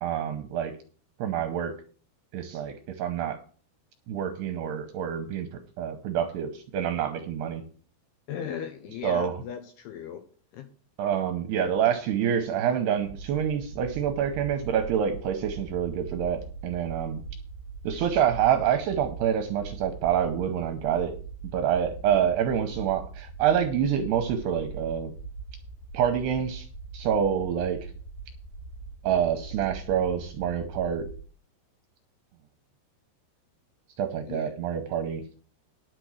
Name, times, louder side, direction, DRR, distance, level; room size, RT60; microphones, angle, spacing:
voice 1, 0.0-0.7 1.2-1.7 2.3-3.4 4.1-7.6 9.0-9.3 11.0-17.2 17.8-21.2 21.4-25.1 25.9-26.7 26.9-27.9 29.0-31.1 34.0-35.2, right 9 dB, 75° right, 7 dB, 2.5 m, -27 dB
voice 2, 8.3-10.3 10.5-10.7 34.3-34.6, left 8 dB, 75° left, 7 dB, 2.5 m, -37 dB
sound 1, 13.0-31.2, right 4 dB, 45° left, 3.6 m, -41 dB
10.0 x 6.8 x 6.2 m, 0.42 s
omnidirectional pair, 5.6 m